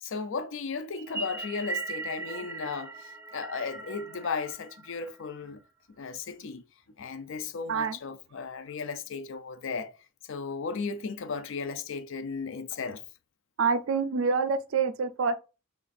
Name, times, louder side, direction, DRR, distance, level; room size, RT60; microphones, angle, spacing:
voice 1, 0.0-2.9 3.3-5.6 6.0-6.6 7.0-9.9 10.3-13.0, left 5 dB, 65° left, 0.5 m, -35 dB
sound 1, 1.0-5.5, right 3 dB, 10° right, 0.5 m, -39 dB
voice 2, 7.7-8.0 13.6-15.3, right 5 dB, 65° right, 0.4 m, -26 dB
3.6 x 2.5 x 3.9 m
head